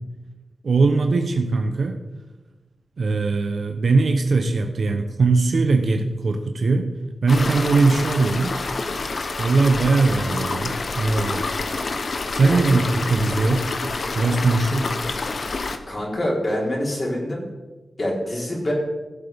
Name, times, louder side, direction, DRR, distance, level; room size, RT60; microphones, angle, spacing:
voice 1, 0.6-2.0 3.0-6.9 7.2-8.6 9.4-11.5 12.3-13.7 14.1-14.9, right 3 dB, 65° right, 5 dB, 0.8 m, -20 dB
sound 1, 7.3-15.8, left 3 dB, 55° left, 0.9 m, -28 dB
voice 2, 12.4-12.8 15.9-17.4 18.0-18.7, left 1 dB, 40° left, -3 dB, 3.8 m, -25 dB
16.0 x 7.8 x 3.5 m, 1.2 s
wide cardioid pair, 80°, 0 cm